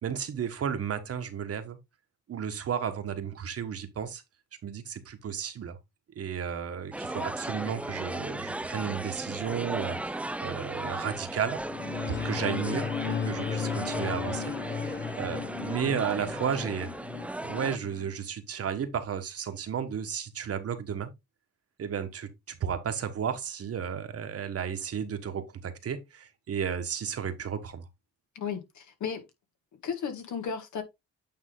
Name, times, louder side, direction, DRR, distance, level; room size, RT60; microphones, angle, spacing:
voice 1, 0.0-1.8 2.3-4.2 4.6-5.8 6.1-11.6 12.1-16.9 17.4-21.1 21.8-27.8, right 7 dB, 50° right, 1.4 m, -33 dB
sound 1, 6.9-17.8, right 1 dB, 5° right, 0.3 m, -36 dB
sound 2, 11.4-18.1, left 7 dB, 35° left, 0.9 m, -35 dB
voice 2, 28.4-29.2 29.8-30.8, left 7 dB, 70° left, 1.9 m, -34 dB
8.8 x 3.6 x 3.8 m
cardioid pair, 90°, 30 cm